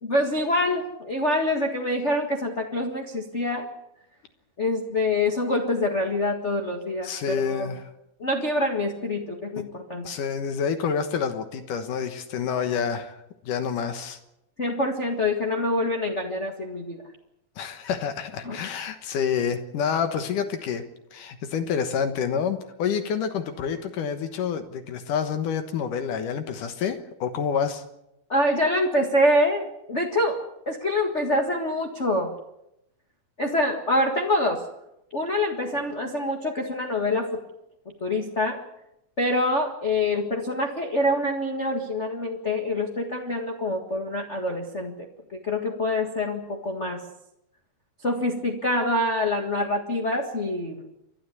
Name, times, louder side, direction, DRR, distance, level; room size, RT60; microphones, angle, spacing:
voice 1, 0.0-3.7 4.6-7.8 8.2-10.1 14.6-17.0 18.4-18.6 28.3-32.3 33.4-34.7 35.1-37.4 37.8-38.6 39.2-47.0 48.0-50.8, left 1 dB, 35° left, 1 dB, 1.0 m, -26 dB
voice 2, 7.0-7.9 10.0-13.2 13.4-14.2 17.6-20.8 21.1-27.8, left 7 dB, 65° left, 8 dB, 2.6 m, -28 dB
30.0 x 12.5 x 8.3 m, 0.86 s
omnidirectional pair, 4.3 m